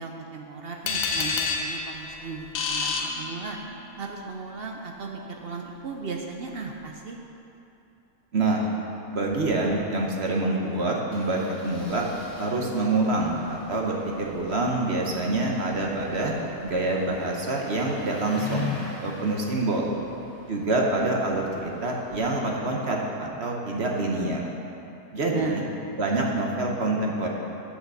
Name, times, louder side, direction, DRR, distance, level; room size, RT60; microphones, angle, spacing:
voice 1, 0.0-3.6 4.0-7.2 25.2-25.6, right 4 dB, 65° right, 2 dB, 0.5 m, -35 dB
sound 1, 0.9-3.9, left 4 dB, 80° left, 1.4 m, -29 dB
voice 2, 8.3-8.7 9.1-12.1 12.4-16.3 16.6-19.9 20.5-24.4 25.1-25.6 26.0-27.3, right 2 dB, 45° right, -1 dB, 1.0 m, -26 dB
Engine starting, 9.4-9.5 9.7-9.8 10.0-10.2 11.1-22.2, left 4 dB, 55° left, 2.4 m, -42 dB
8.1 x 6.4 x 6.7 m, 2.8 s
omnidirectional pair, 1.7 m